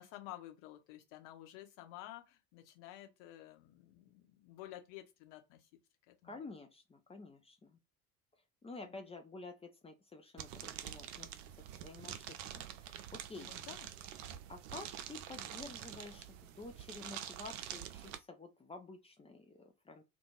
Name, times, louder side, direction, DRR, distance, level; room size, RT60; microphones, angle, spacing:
voice 1, 0.0-5.7 6.1-6.4 8.8-9.1 13.3-13.9, left 14 dB, 60° left, 0.8 m, -52 dB
voice 2, 6.2-7.8 8.6-11.4 11.8-13.5 14.5-20.0, left 3 dB, 15° left, 0.5 m, -50 dB
sound 1, 10.4-18.2, right 10 dB, 60° right, 0.5 m, -47 dB
2.4 x 2.2 x 3.0 m
figure-of-eight pair, 55°, 43 cm